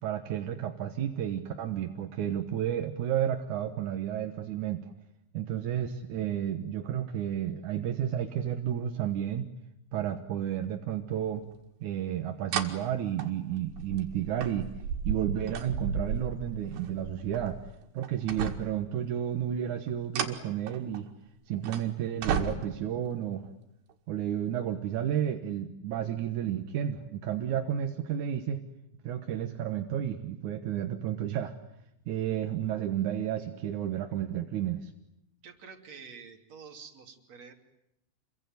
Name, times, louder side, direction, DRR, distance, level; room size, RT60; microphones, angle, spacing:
voice 1, 0.0-4.8 5.3-9.5 9.9-11.4 11.8-14.7 15.0-17.6 17.9-21.1 21.5-23.5 24.1-28.6 29.0-31.6 32.1-34.9, right 10 dB, 65° right, 5 dB, 2.1 m, -32 dB
sound 1, 11.5-11.6 12.5-12.7 13.2-17.7 18.0-18.9 19.9-21.1 21.6-21.8 22.2-22.9 23.9-24.0, right 7 dB, 80° right, 4.1 m, -34 dB
voice 2, 35.4-37.5, right 6 dB, 40° right, 3 dB, 3.6 m, -48 dB
28.0 x 22.5 x 9.4 m, 0.84 s
omnidirectional pair, 4.9 m